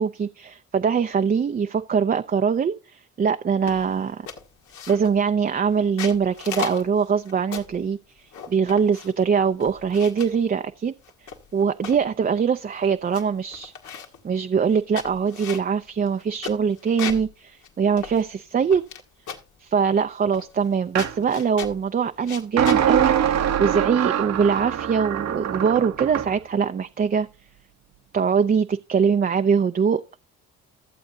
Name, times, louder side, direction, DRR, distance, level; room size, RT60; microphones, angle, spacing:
voice 1, 0.0-4.3 4.9-8.0 8.5-10.9 11.5-18.8 19.6-27.3 28.1-30.0, right 6 dB, 30° right, 0.5 m, -22 dB
sound 1, 3.7-3.9 4.3-5.2 5.8-7.8 8.3-9.2 9.6-10.4 11.0-12.0 12.5-12.6 12.8-13.2 13.5-14.2 14.7-17.3 17.6-17.7 18.0-19.0 19.3-19.6 20.3-20.7 21.0-21.8 22.2-22.8, left 7 dB, 80° left, 1.8 m, -36 dB
sound 2, 20.9-21.1 22.6-26.3, right 9 dB, 65° right, 0.9 m, -23 dB
14.5 x 7.8 x 2.7 m
cardioid pair, 90°, 30 cm